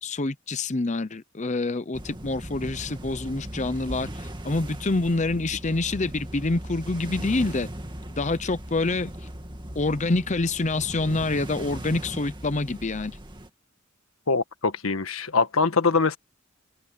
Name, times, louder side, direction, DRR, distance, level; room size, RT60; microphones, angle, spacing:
voice 1, 0.0-7.7 8.2-9.1 9.7-13.2, left 2 dB, 35° left, 0.7 m, -27 dB
sound 1, 1.9-13.5, right 1 dB, 20° right, 2.3 m, -38 dB
voice 2, 14.3-16.2, left 4 dB, 90° left, 1.5 m, -23 dB
head